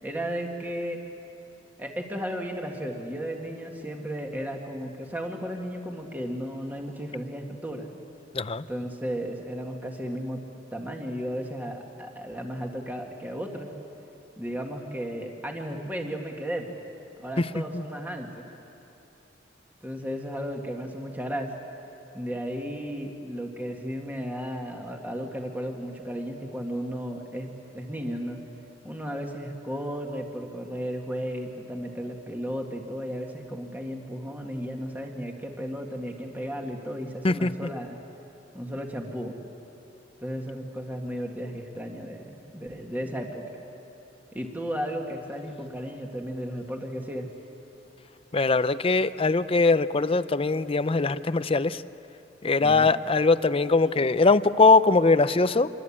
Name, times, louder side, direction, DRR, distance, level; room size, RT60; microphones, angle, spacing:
voice 1, 0.0-1.0 1.8-7.9 8.7-10.4 10.7-13.7 14.4-16.7 17.2-18.4 19.8-21.6 22.1-28.4 28.8-38.0 38.5-39.4 40.2-43.4 44.3-47.3 52.6-52.9, equal, 10° right, 1 dB, 1.8 m, -34 dB
voice 2, 8.3-8.7 17.4-17.8 37.2-37.7 48.3-51.8 52.4-55.7, left 3 dB, 30° left, 14 dB, 0.6 m, -21 dB
26.5 x 23.0 x 8.6 m, 2.9 s
head